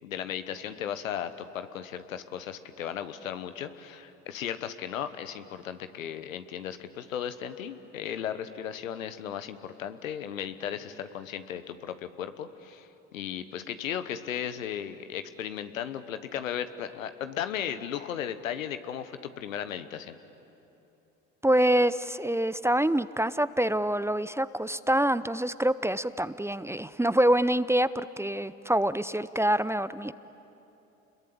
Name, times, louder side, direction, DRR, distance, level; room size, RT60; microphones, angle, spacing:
voice 1, 0.0-20.2, left 9 dB, 85° left, 11 dB, 1.2 m, -36 dB
voice 2, 21.4-30.1, right 1 dB, 5° right, 15 dB, 0.7 m, -26 dB
30.0 x 22.0 x 8.7 m, 2.9 s
hypercardioid pair, 60°, 39 cm